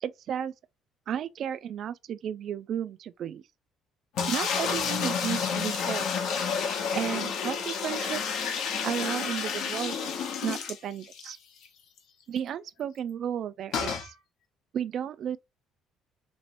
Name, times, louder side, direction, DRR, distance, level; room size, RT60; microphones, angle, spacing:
voice 1, 0.0-0.5 1.1-3.4 4.3-6.1 6.9-8.4 8.8-11.4 12.3-14.1 14.7-15.4, right 9 dB, 55° right, 0.3 m, -33 dB
sound 1, 4.2-11.3 11.7-11.8 12.0-12.1 13.7-14.1, left 6 dB, 70° left, 0.8 m, -30 dB
3.0 x 3.0 x 2.9 m
cardioid pair, 110°, 0 cm